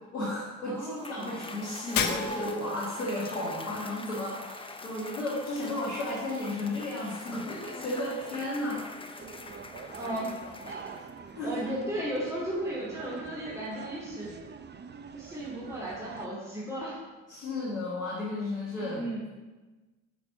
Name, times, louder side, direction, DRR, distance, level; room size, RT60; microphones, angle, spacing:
voice 1, 0.1-8.9 11.3-11.5 17.3-19.0, left 1 dB, 90° left, -8 dB, 1.5 m, -33 dB
voice 2, 0.7-1.4 9.9-10.4 10.6-10.8 11.4-14.3 15.1-17.0 18.8-19.3, right 1 dB, 5° right, -7 dB, 2.7 m, -35 dB
Cheering / Applause / Crowd, 0.8-11.3, left 2 dB, 15° left, 0.7 m, -43 dB
Shatter, 2.0-2.8, left 7 dB, 55° left, 0.9 m, -30 dB
sound 1, 9.2-16.3, right 5 dB, 25° right, 0.6 m, -45 dB
7.0 x 6.0 x 5.7 m, 1.2 s
hypercardioid pair, 45°, 40 cm